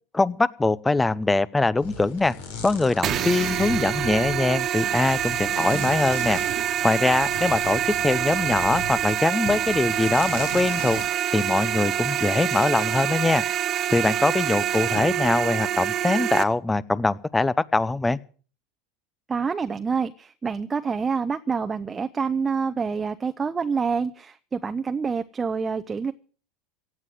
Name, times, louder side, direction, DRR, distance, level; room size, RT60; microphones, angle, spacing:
voice 1, 0.1-2.3 2.6-6.4 6.8-11.0 11.3-13.4 13.9-18.2, left 2 dB, 15° left, 20 dB, 0.7 m, -22 dB
sound 1, 1.8-9.2 9.5-11.0, left 3 dB, 75° left, 3.8 m, -37 dB
sound 2, 3.0-16.4, right 10 dB, 45° right, 1.5 m, -26 dB
voice 2, 19.3-26.1, right 5 dB, 25° right, 9 dB, 0.8 m, -27 dB
17.0 x 8.1 x 7.6 m, 0.41 s
hypercardioid pair, 85°, 0 cm